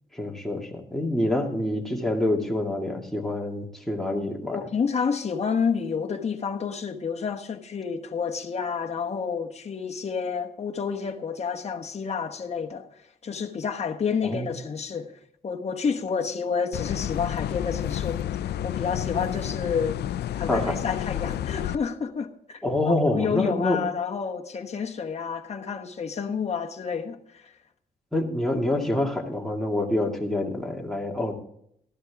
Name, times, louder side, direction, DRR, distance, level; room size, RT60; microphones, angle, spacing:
voice 1, 0.1-4.6 14.2-14.5 20.5-20.7 22.6-23.8 28.1-31.3, left 1 dB, ahead, 2.2 m, -26 dB
voice 2, 4.5-12.9 13.2-20.0 20.3-27.5, left 6 dB, 40° left, 1.2 m, -30 dB
sound 1, 16.7-21.8, left 11 dB, 90° left, 0.5 m, -30 dB
13.5 x 12.5 x 3.5 m
cardioid pair, 100°, 17 cm